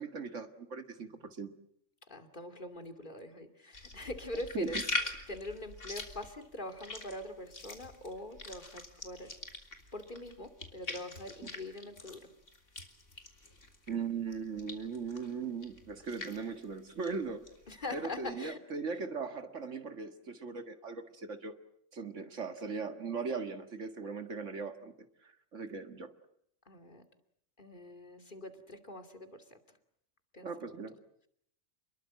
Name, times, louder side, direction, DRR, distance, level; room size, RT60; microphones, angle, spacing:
voice 1, 0.0-1.5 4.5-4.8 13.9-17.5 17.9-21.5 21.9-24.9 25.2-26.1 30.4-31.0, right 5 dB, 80° right, 8 dB, 2.2 m, -39 dB
voice 2, 2.1-9.3 9.9-12.3 17.7-18.6 26.7-27.0 27.6-29.6 30.3-30.5, left 2 dB, 40° left, 6 dB, 2.8 m, -43 dB
sound 1, 3.7-14.0 14.3-18.3, left 2 dB, 85° left, 3.7 m, -43 dB
29.5 x 22.0 x 7.6 m, 0.70 s
omnidirectional pair, 1.2 m